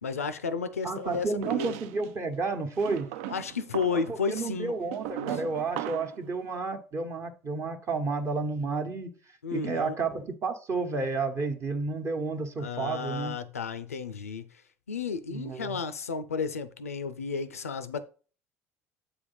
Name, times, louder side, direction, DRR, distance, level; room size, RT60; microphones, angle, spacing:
voice 1, 0.0-1.8 3.3-4.7 5.2-5.4 9.4-10.0 12.6-14.5 14.9-18.1, left 5 dB, 85° left, 0.4 m, -32 dB
voice 2, 0.8-3.1 3.9-9.1 9.5-13.4 15.3-15.8, right 4 dB, 40° right, 1.1 m, -31 dB
sound 1, 1.1-2.1 2.8-6.2, right 13 dB, 70° right, 0.4 m, -37 dB
8.0 x 3.4 x 5.4 m
figure-of-eight pair, 60°, 8 cm